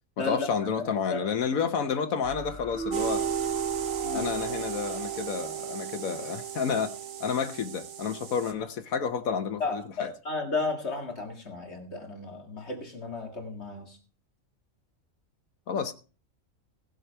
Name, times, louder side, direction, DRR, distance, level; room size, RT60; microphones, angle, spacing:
voice 1, 0.2-3.2 4.1-6.9 7.2-10.1 15.7-15.9, left 6 dB, 85° left, 1.4 m, -30 dB
voice 2, 0.8-1.3 4.0-4.6 9.6-14.0, left 3 dB, 50° left, 2.1 m, -34 dB
sound 1, 2.2-7.5 7.8-7.9, equal, 20° right, 2.7 m, -46 dB
Keyboard (musical), 2.7-5.6, right 3 dB, 5° left, 5.7 m, -37 dB
sound 2, 2.9-8.5, right 11 dB, 75° right, 1.4 m, -34 dB
16.5 x 7.7 x 4.5 m
omnidirectional pair, 1.4 m